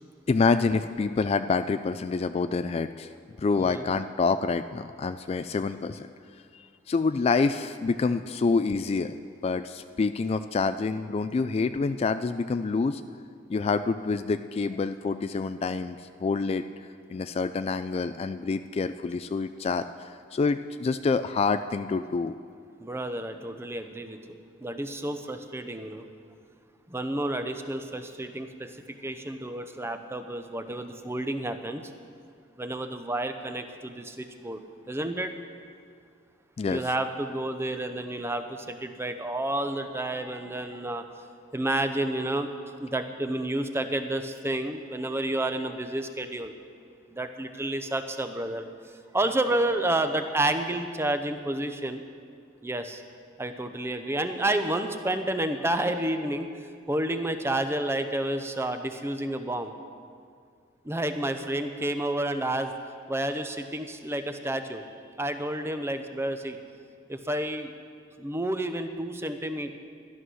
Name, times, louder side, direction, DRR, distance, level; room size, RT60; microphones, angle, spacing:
voice 1, 0.3-3.1 3.4-6.1 6.9-9.2 9.4-13.0 13.5-16.6 17.1-22.3 36.6-36.8, left 4 dB, 30° left, 10 dB, 0.3 m, -27 dB
voice 2, 22.8-26.1 26.9-31.8 32.6-34.6 34.9-35.4 36.7-41.0 41.5-42.5 42.8-46.5 47.1-48.7 49.1-52.0 52.6-53.0 53.4-56.5 56.9-59.7 60.8-62.7 63.1-64.8 65.2-66.6 67.1-67.7 68.2-69.8, right 1 dB, 15° right, 8 dB, 0.7 m, -30 dB
13.0 x 11.0 x 6.3 m, 2.2 s
head